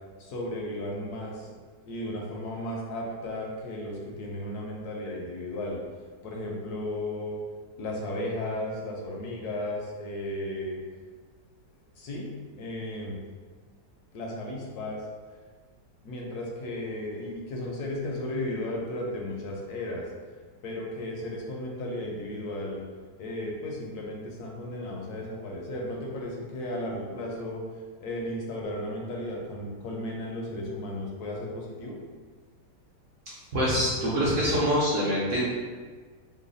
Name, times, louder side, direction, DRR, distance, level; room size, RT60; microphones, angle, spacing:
voice 1, 0.2-1.5 1.8-5.8 6.2-7.4 7.8-10.8 12.0-12.3 12.6-13.2 14.1-15.0 16.0-20.1 20.6-22.8 23.2-27.6 28.0-32.0, left 1 dB, 70° left, -1 dB, 1.1 m, -34 dB
voice 2, 33.5-35.4, equal, 55° right, -7 dB, 0.9 m, -25 dB
3.2 x 2.2 x 3.8 m, 1.5 s
omnidirectional pair, 1.9 m